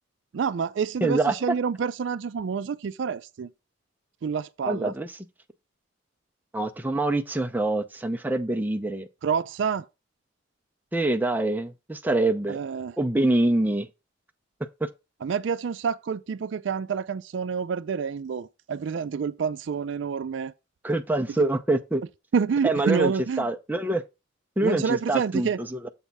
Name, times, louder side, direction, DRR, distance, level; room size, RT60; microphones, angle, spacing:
voice 1, 0.3-3.5 4.2-4.9 9.2-9.8 12.5-13.0 15.2-20.5 22.3-23.5 24.6-25.6, right 6 dB, 65° right, 0.4 m, -28 dB
voice 2, 1.0-1.4 4.6-5.1 6.5-9.1 10.9-12.6 13.0-13.9 14.8-14.9 20.8-22.0 22.6-23.1 23.4-24.0 24.6-25.9, right 2 dB, 10° right, 0.6 m, -25 dB
7.3 x 3.4 x 5.3 m
head